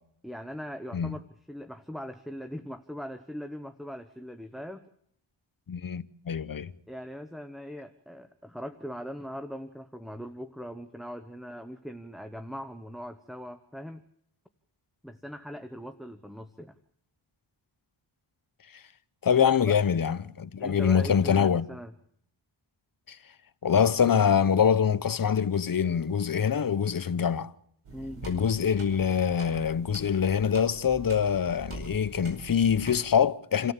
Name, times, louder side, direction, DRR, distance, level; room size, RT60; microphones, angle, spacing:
voice 1, 0.2-4.8 6.9-14.0 15.0-16.8 19.3-19.8 20.6-21.9 27.9-28.3, equal, ahead, 1.0 m, -40 dB
voice 2, 5.7-6.7 18.7-18.8 19.2-21.7 23.1-23.2 23.6-27.5 28.2-33.7, left 7 dB, 45° left, 0.9 m, -24 dB
sound 1, 27.8-33.0, right 3 dB, 90° right, 5.2 m, -44 dB
27.0 x 14.5 x 7.5 m
wide cardioid pair, 80°, 49 cm